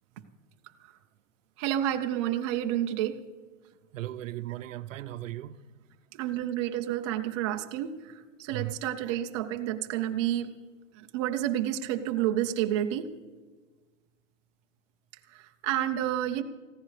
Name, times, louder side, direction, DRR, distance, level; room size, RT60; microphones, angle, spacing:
voice 1, 1.6-3.2 6.1-10.5 10.9-13.1 15.3-16.4, right 12 dB, 25° right, 0.5 m, -30 dB
voice 2, 3.6-5.6 8.5-8.7, right 15 dB, 80° right, 0.7 m, -37 dB
20.5 x 15.0 x 3.3 m
hypercardioid pair, 155°, 38 cm